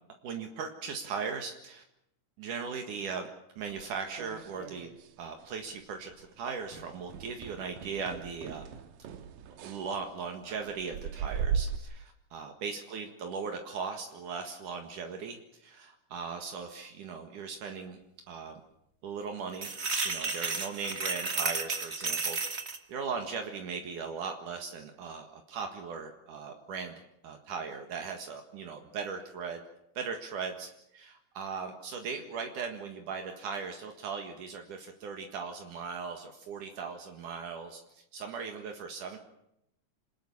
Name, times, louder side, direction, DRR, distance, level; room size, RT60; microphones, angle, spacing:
voice 1, 0.2-1.8 2.4-3.3 3.6-4.9 5.2-8.7 9.6-18.0 18.3-18.6 19.0-19.7 20.0-22.6 22.9-29.6 29.9-39.2, right 5 dB, 70° right, 4 dB, 3.2 m, -38 dB
sound 1, 3.7-5.2 5.4-5.8 6.1-6.3 6.7-11.8, right 7 dB, 90° right, 2.9 m, -38 dB
sound 2, 19.5-22.8, right 4 dB, 35° right, 1.1 m, -32 dB
27.5 x 19.5 x 7.2 m, 0.81 s
omnidirectional pair, 3.8 m